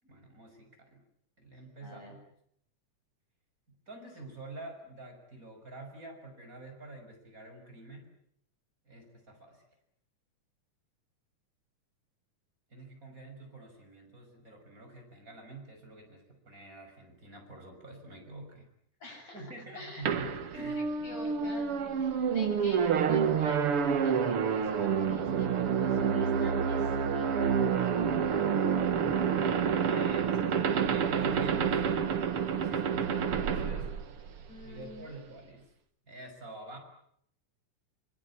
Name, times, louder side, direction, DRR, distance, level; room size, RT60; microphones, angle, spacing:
voice 1, 0.0-1.0 1.4-2.3 3.9-8.2 8.8-9.6 12.7-18.7 19.3-20.8 29.9-33.9 34.2-35.6 36.1-36.8, right 2 dB, 25° right, 3 dB, 6.5 m, -47 dB
voice 2, 1.8-2.1 19.0-19.5 19.8-20.1 20.6-27.5 27.8-28.5 34.5-35.2, left 1 dB, 55° left, 2 dB, 9.3 m, -47 dB
sound 1, 20.1-34.6, right 7 dB, 50° right, 2.2 m, -28 dB
26.0 x 25.0 x 8.6 m, 0.70 s
omnidirectional pair, 3.6 m